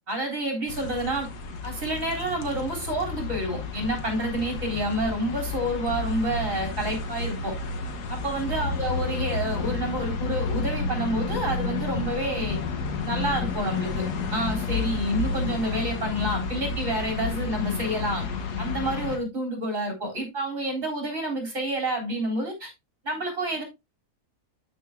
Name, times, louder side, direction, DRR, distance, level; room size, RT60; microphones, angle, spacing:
voice 1, 0.1-1.3 1.6-7.5 8.1-12.6 13.0-18.3 18.6-22.7 23.0-23.6, right 1 dB, 55° right, 4.1 m, -29 dB
sound 1, 0.7-19.2, left 4 dB, 85° left, 1.7 m, -31 dB
12.5 x 5.3 x 2.3 m
omnidirectional pair, 1.7 m